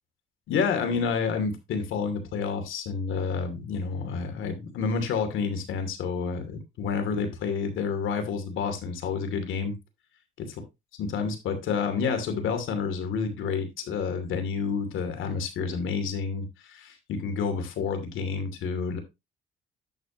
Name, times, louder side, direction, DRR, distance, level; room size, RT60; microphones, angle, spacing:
voice 1, 0.5-9.7 10.4-10.6 11.0-19.0, left 5 dB, 80° left, 6 dB, 2.6 m, -29 dB
11.0 x 6.8 x 2.9 m, 0.23 s
cardioid pair, 90°, 20 cm